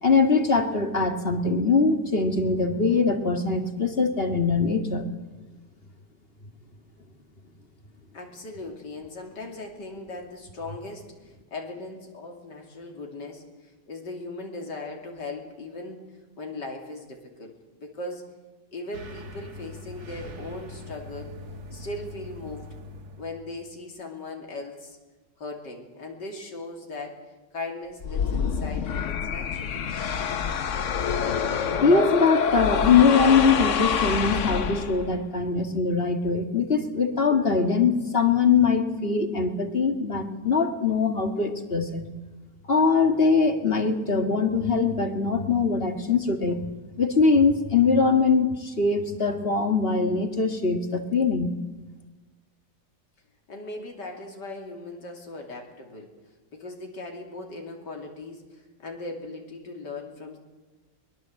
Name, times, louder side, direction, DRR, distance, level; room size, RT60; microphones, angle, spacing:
voice 1, 0.0-5.1 31.7-42.1 42.7-46.6 47.0-51.5, left 4 dB, 35° left, 6 dB, 2.1 m, -22 dB
voice 2, 8.1-16.0 16.4-18.3 18.7-21.3 21.7-22.7 23.2-25.0 25.4-29.9 53.5-56.2 56.5-60.4, left 2 dB, 70° left, 2 dB, 3.4 m, -38 dB
sound 1, 18.9-23.6, left 1 dB, 60° right, 2.3 m, -42 dB
sound 2, 28.0-35.2, left 7 dB, 50° left, 1.1 m, -26 dB
22.5 x 21.5 x 7.7 m, 1.2 s
omnidirectional pair, 1.9 m